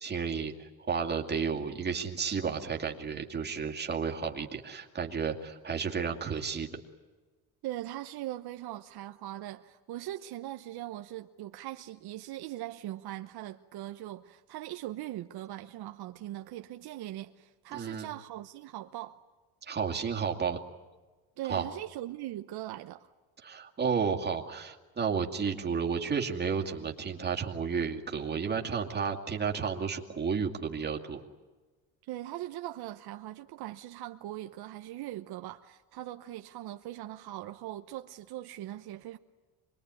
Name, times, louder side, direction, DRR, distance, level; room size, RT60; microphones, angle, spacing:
voice 1, 0.0-6.7 17.7-18.1 19.7-20.6 21.5-21.7 23.4-31.2, right 6 dB, 25° right, 2.3 m, -32 dB
voice 2, 7.6-19.2 21.4-23.1 32.1-39.2, right 14 dB, 70° right, 1.0 m, -40 dB
26.5 x 21.5 x 9.7 m
cardioid pair, 155°, 40 cm